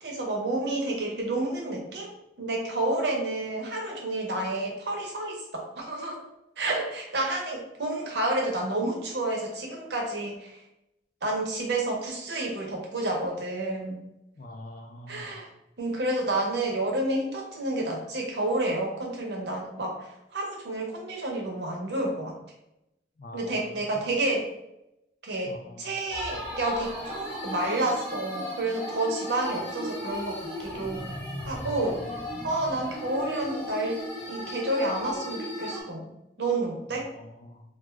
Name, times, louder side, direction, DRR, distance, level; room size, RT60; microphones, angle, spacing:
voice 1, 0.0-2.1 2.4-6.2 6.6-10.6 11.2-14.0 15.1-15.5 15.8-22.3 23.3-24.5 25.2-31.1 31.5-32.0 32.4-34.0 34.3-36.1 36.4-37.1, right 2 dB, 70° right, 0 dB, 0.8 m, -30 dB
voice 2, 14.4-15.3 23.2-23.8 25.4-25.9 37.0-37.6, left 1 dB, 50° left, 3 dB, 0.4 m, -45 dB
sound 1, 26.1-35.8, left 1 dB, 15° left, 1.0 m, -36 dB
2.4 x 2.3 x 3.1 m, 0.86 s
head